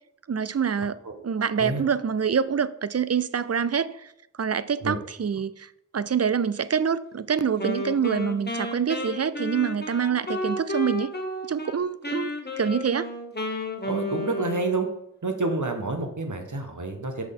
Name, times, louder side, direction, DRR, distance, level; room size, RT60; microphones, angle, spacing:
voice 1, 0.3-1.0 1.2-4.1 4.4-11.1 11.5-12.3 12.6-13.1, right 7 dB, 50° right, 0.4 m, -26 dB
Wind instrument woodwind instrument, 7.6-11.8 12.0-15.0, left 2 dB, 30° left, 1.3 m, -32 dB
voice 2, 13.8-14.9 15.2-17.3, right 3 dB, 65° right, 1.2 m, -28 dB
6.1 x 6.1 x 3.7 m
wide cardioid pair, 45°, 32 cm